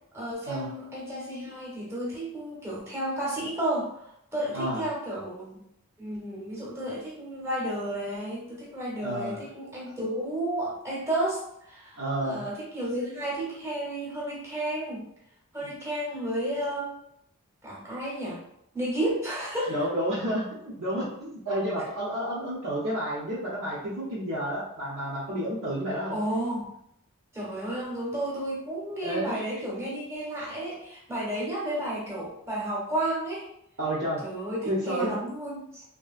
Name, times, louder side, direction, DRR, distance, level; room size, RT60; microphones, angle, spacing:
voice 1, 0.1-5.6 6.0-15.0 15.5-16.9 17.6-18.4 18.7-19.7 21.5-21.6 26.1-26.8 27.3-33.5 34.2-35.8, right 1 dB, 15° right, -5 dB, 1.0 m, -32 dB
voice 2, 9.0-9.4 12.0-12.5 15.6-15.7 19.7-26.2 29.0-29.4 33.8-34.2 34.7-35.1, right 1 dB, 65° right, -8 dB, 0.8 m, -30 dB
2.9 x 2.8 x 2.4 m, 0.75 s
head